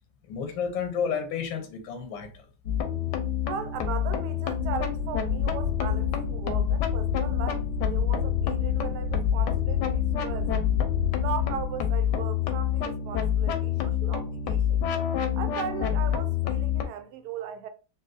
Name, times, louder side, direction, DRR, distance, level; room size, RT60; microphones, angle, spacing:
voice 1, 0.3-2.5, left 6 dB, 90° left, 1.5 m, -31 dB
sound 1, 2.7-16.9, left 9 dB, 75° left, 1.1 m, -28 dB
voice 2, 3.4-10.5 11.2-14.8 15.3-17.7, right 8 dB, 70° right, 1.1 m, -37 dB
sound 2, 4.6-11.6, left 6 dB, 5° left, 0.5 m, -30 dB
3.9 x 2.7 x 2.4 m
omnidirectional pair, 2.1 m